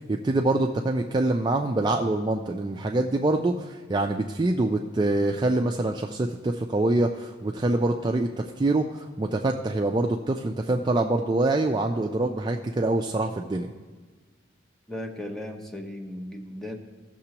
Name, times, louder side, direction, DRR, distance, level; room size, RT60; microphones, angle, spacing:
voice 1, 0.1-8.3 8.6-13.7, right 2 dB, 25° right, 2 dB, 0.3 m, -25 dB
voice 2, 14.9-16.8, left 1 dB, ahead, 3 dB, 0.7 m, -36 dB
16.0 x 6.7 x 2.9 m, 1.4 s
head